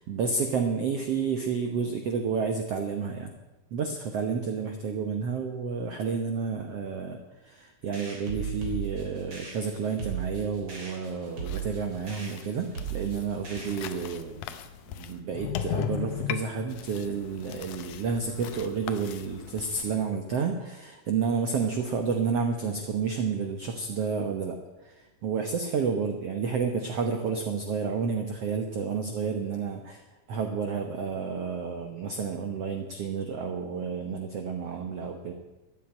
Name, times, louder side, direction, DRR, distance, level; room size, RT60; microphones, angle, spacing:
voice 1, 0.0-3.3 3.7-14.5 14.9-24.6 24.8-30.0 30.3-35.3, right 5 dB, 85° right, 5 dB, 1.3 m, -30 dB
sound 1, 7.9-14.1, right 6 dB, 30° right, 3.6 m, -37 dB
sound 2, 11.3-19.9, left 10 dB, 75° left, 1.9 m, -37 dB
14.0 x 9.4 x 8.8 m, 1.1 s
omnidirectional pair, 4.5 m